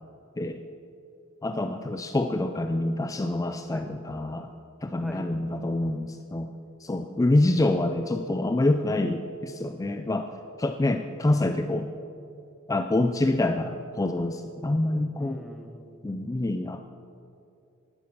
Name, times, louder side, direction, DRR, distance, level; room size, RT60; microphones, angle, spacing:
voice 1, 1.4-4.5 4.8-6.5 6.8-10.3 10.6-11.9 12.7-15.4 16.0-16.8, left 2 dB, 15° left, 7 dB, 0.3 m, -26 dB
voice 2, 5.0-5.3 15.2-16.4, equal, ahead, 4 dB, 0.8 m, -45 dB
10.5 x 9.7 x 5.9 m, 2.6 s
head